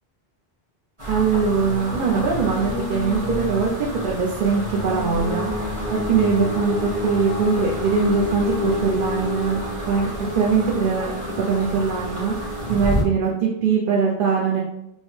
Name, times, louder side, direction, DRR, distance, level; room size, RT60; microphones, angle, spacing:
sound 1, 1.0-13.0, equal, 30° right, 1.4 m, -28 dB
voice 1, 1.1-3.7 4.0-5.5 6.1-9.6 9.9-10.1 10.4-11.1 11.5-12.3 12.7-14.6, right 5 dB, 60° right, -2 dB, 0.7 m, -21 dB
5.4 x 2.0 x 3.1 m, 0.83 s
omnidirectional pair, 1.0 m